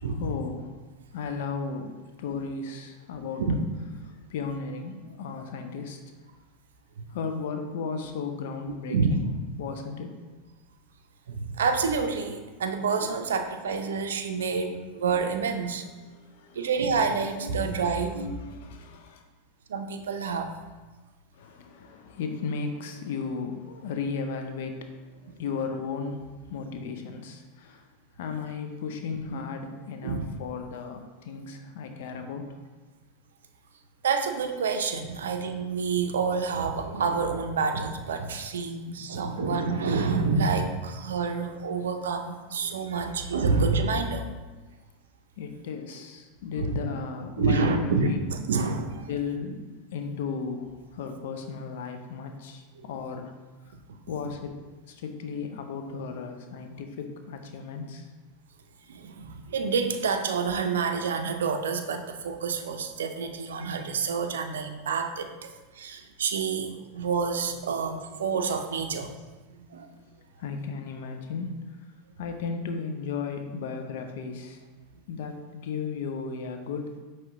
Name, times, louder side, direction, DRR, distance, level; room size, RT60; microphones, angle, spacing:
voice 1, 0.0-0.7 1.1-3.4 4.0-6.0 7.1-9.3 9.6-10.2 15.9-16.7 18.4-19.2 21.3-27.8 28.2-32.5 45.4-48.2 49.1-53.3 54.1-54.6 54.9-58.1 70.4-71.5 72.2-74.6 75.1-77.0, left 5 dB, 70° left, 6 dB, 0.5 m, -35 dB
voice 2, 11.3-15.8 16.6-18.5 19.7-20.6 25.3-25.4 29.3-29.4 30.0-30.3 34.0-44.3 46.6-46.8 47.4-49.1 58.9-65.5 65.8-69.1 69.5-69.9, right 5 dB, 85° right, 7 dB, 0.4 m, -28 dB
5.7 x 3.0 x 3.0 m, 1.3 s
hypercardioid pair, 100°, 0 cm